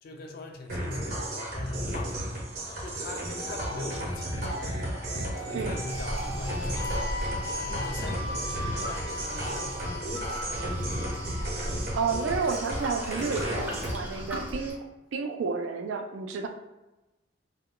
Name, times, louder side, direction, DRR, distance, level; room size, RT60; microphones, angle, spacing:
voice 1, 0.0-4.7 5.1-7.3 7.5-10.9, left 2 dB, 50° left, 3 dB, 0.4 m, -41 dB
sound 1, 0.7-13.9, right 1 dB, 50° right, 0.7 m, -34 dB
sound 2, 3.3-13.0, left 1 dB, 65° left, 0.9 m, -39 dB
Waves surf, 5.9-14.7, equal, 10° right, 0.5 m, -37 dB
voice 2, 11.9-16.5, right 5 dB, 80° right, 6 dB, 0.3 m, -31 dB
2.2 x 2.1 x 3.6 m, 1.0 s
head